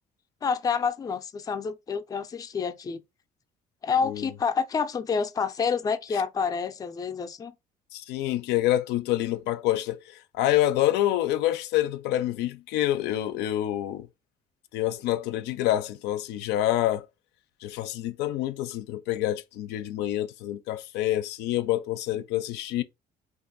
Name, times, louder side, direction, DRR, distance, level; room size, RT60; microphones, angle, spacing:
voice 1, 0.4-3.0 3.8-7.5, left 6 dB, 20° left, 0.4 m, -28 dB
voice 2, 7.9-14.1 14.7-17.1 17.6-22.8, left 14 dB, 85° left, 0.4 m, -27 dB
2.6 x 2.4 x 3.9 m
cardioid pair, 110°, 17 cm